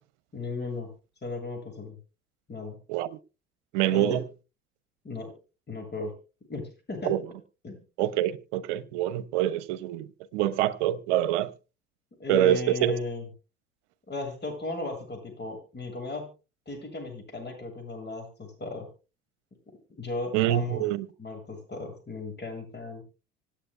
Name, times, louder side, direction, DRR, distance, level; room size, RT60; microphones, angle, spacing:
voice 1, 0.3-0.9 1.2-2.0 2.5-2.8 3.9-4.2 5.0-5.3 5.7-6.1 6.5-7.2 7.6-7.8 12.2-13.3 14.1-16.3 16.7-18.9 20.0-20.8 21.2-23.0, left 3 dB, 25° left, 7.7 m, -36 dB
voice 2, 3.7-4.2 7.0-7.2 8.0-11.5 12.3-12.9 20.3-21.1, right 12 dB, 65° right, 1.1 m, -26 dB
25.5 x 9.0 x 2.3 m
hypercardioid pair, 65°, 38 cm